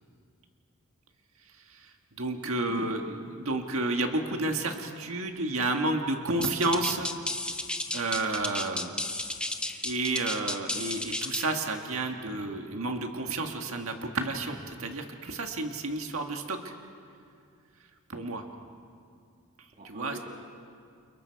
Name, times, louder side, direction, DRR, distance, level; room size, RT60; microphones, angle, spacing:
voice 1, 1.5-7.1 7.9-8.9 9.8-16.7 18.1-18.4 19.6-20.2, right 2 dB, 65° right, 4 dB, 1.8 m, -31 dB
voice 2, 2.7-3.7 19.8-20.2, right 1 dB, 40° right, -1 dB, 2.7 m, -42 dB
sound 1, 6.4-11.5, left 1 dB, 5° left, 0.9 m, -33 dB
29.0 x 29.0 x 4.7 m, 2.3 s
head